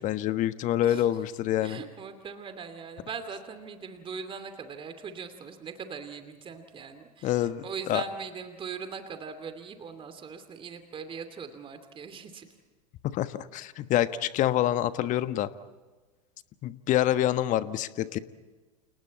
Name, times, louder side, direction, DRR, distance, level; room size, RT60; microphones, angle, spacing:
voice 1, 0.0-1.8 7.2-8.0 13.0-15.5 16.6-18.2, left 12 dB, 40° left, 12 dB, 1.3 m, -27 dB
voice 2, 1.6-12.4, right 6 dB, 25° right, 9 dB, 2.7 m, -40 dB
30.0 x 29.5 x 4.3 m, 1.3 s
figure-of-eight pair, 90°, 21 cm